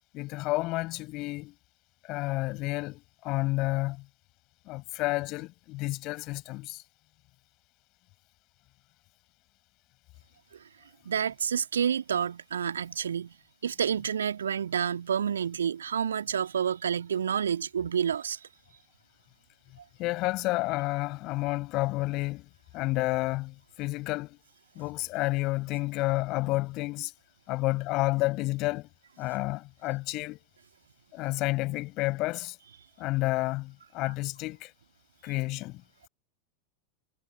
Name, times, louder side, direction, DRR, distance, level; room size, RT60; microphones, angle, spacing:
voice 1, 0.1-1.5 2.0-4.0 4.7-6.8 20.0-24.4 24.7-27.1 27.5-28.9 29.2-30.4 31.1-32.6 33.0-34.7 35.2-35.8, left 21 dB, 40° left, 6.2 m, -30 dB
voice 2, 11.1-13.3 13.6-18.4, right 8 dB, 65° right, 1.7 m, -29 dB
figure-of-eight pair, 90°, 0 cm